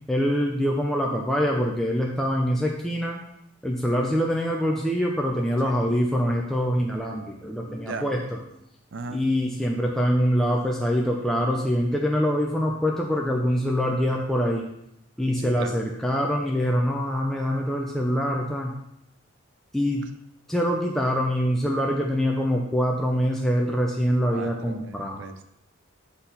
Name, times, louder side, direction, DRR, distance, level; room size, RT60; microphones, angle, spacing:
voice 1, 0.1-3.2 3.6-8.4 9.1-14.7 15.2-18.7 19.7-20.1 20.5-25.2, equal, ahead, -1 dB, 0.5 m, -24 dB
voice 2, 15.4-15.8 24.3-25.4, right 3 dB, 60° right, 9 dB, 0.5 m, -37 dB
7.7 x 4.1 x 4.0 m, 0.78 s
head